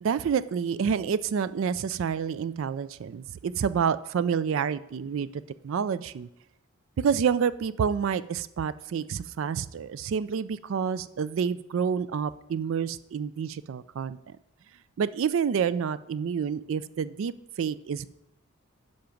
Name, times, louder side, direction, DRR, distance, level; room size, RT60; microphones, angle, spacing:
voice 1, 0.0-6.3 7.0-14.4 15.0-17.3 17.6-18.1, right 7 dB, 65° right, 16 dB, 0.3 m, -28 dB
10.5 x 5.8 x 5.2 m, 0.84 s
head